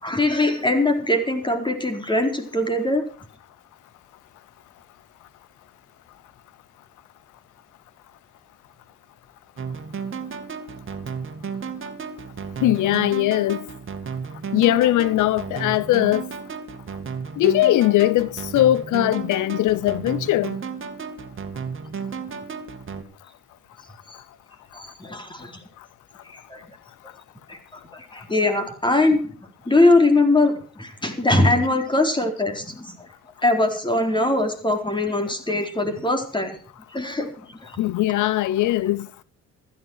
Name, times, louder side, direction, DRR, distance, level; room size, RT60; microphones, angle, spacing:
voice 1, 0.0-3.0 24.1-24.2 24.7-25.6 26.2-26.6 27.5-27.6 27.9-29.2 29.7-33.1 33.4-36.5 36.9-37.7, left 2 dB, 15° left, 4.2 m, -21 dB
sound 1, 9.6-23.0, right 5 dB, 40° right, 2.2 m, -33 dB
voice 2, 12.6-13.6 14.5-16.2 17.4-20.5 37.8-39.1, left 14 dB, 80° left, 0.7 m, -20 dB
15.5 x 14.0 x 4.7 m
cardioid pair, 90°, 30 cm